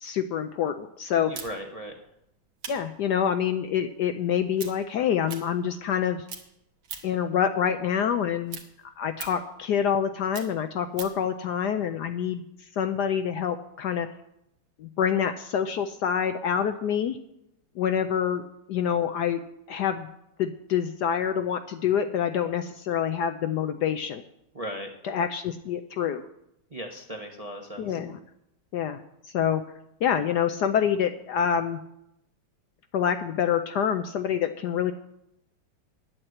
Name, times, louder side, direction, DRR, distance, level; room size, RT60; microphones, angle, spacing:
voice 1, 0.0-1.3 2.7-6.2 7.0-8.6 9.0-12.4 12.8-14.1 14.8-17.2 17.8-18.4 18.7-19.4 19.7-20.1 20.4-24.2 25.0-26.2 27.8-28.2 28.7-29.0 29.3-29.6 30.0-31.8 32.9-34.9, left 8 dB, 70° left, 8 dB, 1.1 m, -26 dB
voice 2, 1.1-1.9 24.5-24.9 26.7-28.0, equal, 25° right, 2 dB, 0.8 m, -37 dB
sound 1, 1.3-6.0 6.3-7.3 7.7-11.3, right 6 dB, 80° right, 2.1 m, -42 dB
9.9 x 8.7 x 7.8 m, 0.82 s
omnidirectional pair, 2.2 m